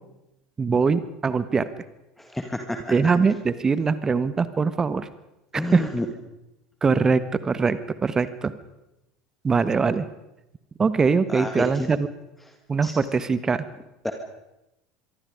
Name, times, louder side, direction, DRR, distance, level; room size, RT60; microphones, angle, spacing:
voice 1, 0.6-1.7 2.9-5.1 5.7-5.8 6.8-8.5 9.4-10.1 10.8-12.1 12.7-13.6, right 5 dB, 20° right, 14 dB, 1.4 m, -22 dB
voice 2, 2.2-2.8 5.5-6.1 11.3-11.9 12.8-12.9 14.0-14.1, left 1 dB, 5° left, 5 dB, 2.1 m, -29 dB
25.5 x 23.0 x 5.1 m, 0.92 s
figure-of-eight pair, 70°, 3 cm